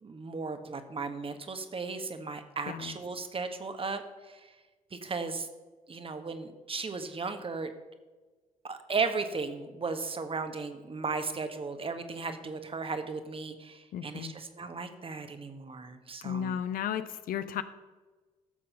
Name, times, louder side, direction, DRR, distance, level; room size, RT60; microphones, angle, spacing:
voice 1, 0.0-4.0 4.3-4.5 4.9-5.5 5.9-7.7 8.6-16.6, right 4 dB, 30° right, 8 dB, 1.4 m, -36 dB
voice 2, 13.9-14.3 16.2-17.6, left 9 dB, 50° left, 12 dB, 0.7 m, -34 dB
13.5 x 7.5 x 5.5 m, 1.3 s
figure-of-eight pair, 45°, 18 cm